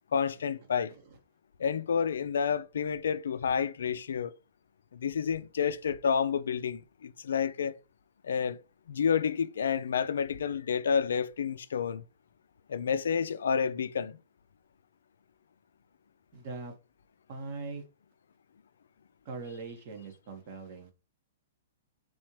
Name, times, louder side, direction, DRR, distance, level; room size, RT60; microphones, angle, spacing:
voice 1, 0.1-0.9 1.6-4.3 4.9-7.7 8.2-8.6 8.9-12.0 12.7-14.2, left 7 dB, 75° left, 0.3 m, -29 dB
voice 2, 16.3-16.7 17.3-17.8 19.2-20.9, right 3 dB, 50° right, 1.4 m, -41 dB
4.1 x 2.9 x 3.1 m
hypercardioid pair, 125°, 0 cm